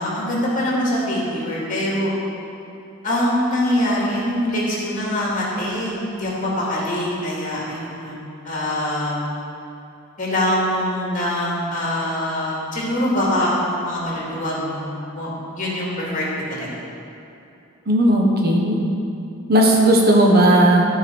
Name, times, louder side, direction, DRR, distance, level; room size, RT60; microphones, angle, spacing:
voice 1, 0.0-2.1 3.0-8.2 8.4-9.3 10.2-13.5 13.8-15.3 15.6-16.7, left 1 dB, 40° left, -5 dB, 2.3 m, -23 dB
voice 2, 17.9-18.8 19.5-20.9, right 1 dB, 50° right, -1 dB, 1.1 m, -15 dB
13.5 x 4.7 x 4.5 m, 2.8 s
head